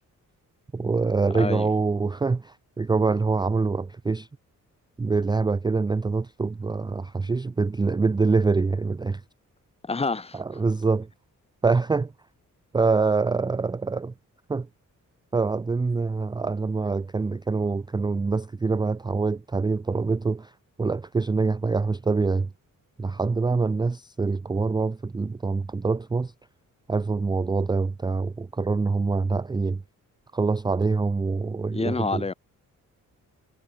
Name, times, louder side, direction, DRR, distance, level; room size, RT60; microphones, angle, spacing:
voice 1, 0.7-4.3 5.0-9.2 10.3-11.1 11.6-12.1 12.7-14.1 14.5-14.7 15.3-20.5 20.8-22.5 23.0-26.3 26.9-29.8 30.3-32.2, right 4 dB, 15° right, 0.4 m, -25 dB
voice 2, 1.3-1.7 9.8-10.4 31.7-32.3, left 4 dB, 20° left, 1.0 m, -28 dB
wide cardioid pair, 170°, 32 cm